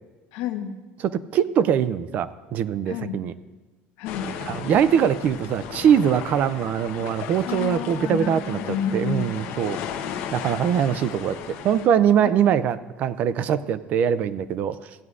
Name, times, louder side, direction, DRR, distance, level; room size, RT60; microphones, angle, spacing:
voice 1, 0.3-0.7 2.9-3.2 4.0-4.3 7.4-9.4, left 7 dB, 90° left, 5 dB, 1.0 m, -29 dB
voice 2, 1.0-3.3 4.5-8.6 8.9-9.8 10.3-14.8, right 8 dB, 40° right, 15 dB, 0.3 m, -22 dB
sound 1, 4.1-11.9, left 8 dB, 65° left, 0.8 m, -35 dB
16.0 x 9.3 x 2.5 m, 1.2 s
cardioid pair, 180°, 4 cm